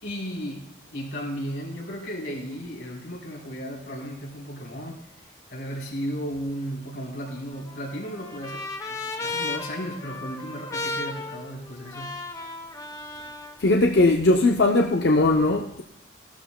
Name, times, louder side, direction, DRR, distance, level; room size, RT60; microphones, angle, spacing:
voice 1, 0.0-5.0 5.5-12.2, equal, 90° left, 3.8 m, -35 dB
Trumpet, 7.3-13.6, left 3 dB, 20° left, 0.8 m, -35 dB
voice 2, 13.6-15.8, left 2 dB, 60° left, 0.7 m, -19 dB
16.5 x 12.5 x 2.2 m
head